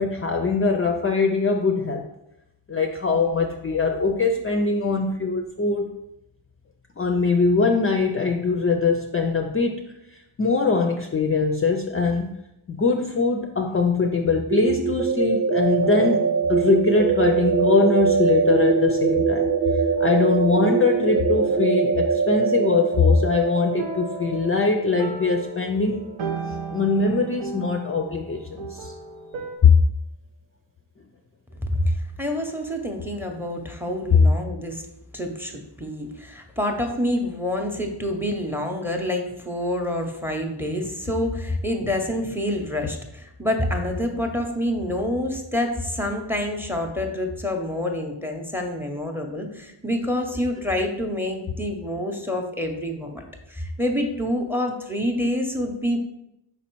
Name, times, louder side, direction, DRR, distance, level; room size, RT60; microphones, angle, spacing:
voice 1, 0.0-2.0 2.7-5.9 7.0-9.8 10.4-12.3 12.7-26.1 26.7-28.9 29.6-29.7 34.1-34.2, left 4 dB, 30° left, 3 dB, 0.4 m, -22 dB
sound 1, 14.5-26.2, right 5 dB, 45° right, 0.6 m, -23 dB
sound 2, 15.8-17.6 18.5-18.8 20.0-20.8 21.3-22.5 23.8-29.6, right 4 dB, 85° right, 0.8 m, -37 dB
voice 2, 31.6-34.8 35.1-53.2 53.5-56.1, left 1 dB, 5° right, 3 dB, 0.6 m, -27 dB
5.5 x 4.1 x 4.5 m, 0.84 s
wide cardioid pair, 150°, 46 cm